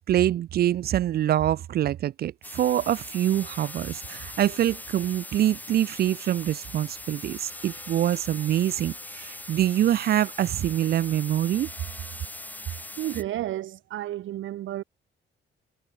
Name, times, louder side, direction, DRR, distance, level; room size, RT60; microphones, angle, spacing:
voice 1, 0.0-11.7, right 12 dB, 50° right, 0.4 m, -25 dB
sound 1, 2.4-13.2, left 1 dB, 10° left, 1.0 m, -41 dB
voice 2, 12.6-14.8, right 13 dB, 80° right, 2.1 m, -32 dB
cardioid pair, 90°, 20 cm